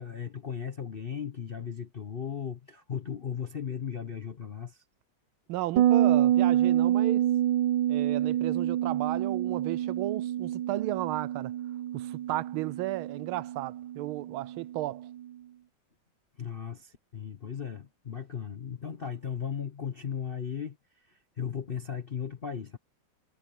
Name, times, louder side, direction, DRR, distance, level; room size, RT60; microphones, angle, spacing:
voice 1, 0.0-4.8 16.4-20.8 21.1-22.8, left 7 dB, 50° left, 0.6 m, -36 dB
voice 2, 5.5-7.3 7.9-11.5 11.9-15.1, right 16 dB, 85° right, 1.4 m, -34 dB
Bass guitar, 5.8-15.1, right 12 dB, 70° right, 1.3 m, -27 dB
omnidirectional pair, 2.3 m